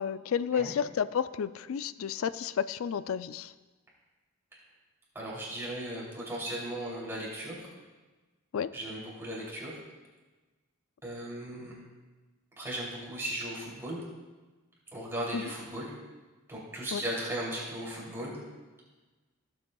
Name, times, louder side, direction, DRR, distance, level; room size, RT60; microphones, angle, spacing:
voice 1, 0.0-3.5 8.5-8.7 15.3-15.4 16.9-17.0, left 7 dB, 80° left, 15 dB, 0.4 m, -31 dB
voice 2, 5.1-7.7 8.7-9.7 11.0-11.8 12.6-14.0 14.9-15.9 16.5-18.4, right 1 dB, 10° right, -6 dB, 3.0 m, -37 dB
17.0 x 7.9 x 2.3 m, 1.3 s
head